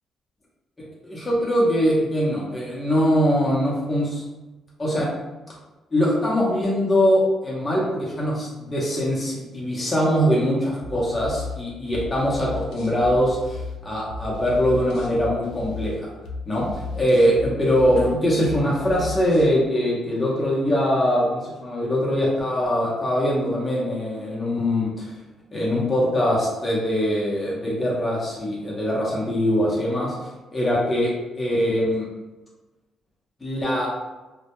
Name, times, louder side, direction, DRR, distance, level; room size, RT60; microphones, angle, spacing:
voice 1, 0.8-4.2 4.8-5.1 5.9-16.0 16.5-25.1 25.5-30.1 30.5-32.1 33.4-33.9, equal, 20° left, -6 dB, 0.7 m, -22 dB
sound 1, 10.8-19.5, left 3 dB, 85° left, 0.4 m, -35 dB
2.1 x 2.1 x 2.9 m, 1.1 s
cardioid pair, 90°, 0 cm